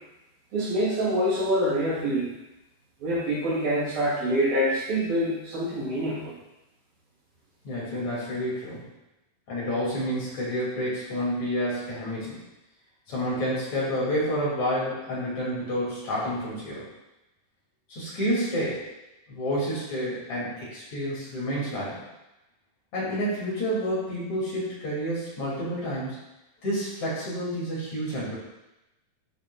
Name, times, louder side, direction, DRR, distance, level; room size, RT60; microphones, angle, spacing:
voice 1, 0.5-2.3 3.0-6.3, equal, 75° right, -8 dB, 4.6 m, -25 dB
voice 2, 7.6-8.9 9.5-12.4 13.1-16.8 17.9-18.8 19.3-22.0 22.9-26.2 26.6-28.4, equal, 55° left, -7 dB, 4.2 m, -29 dB
12.0 x 5.4 x 2.5 m, 0.95 s
omnidirectional pair, 4.0 m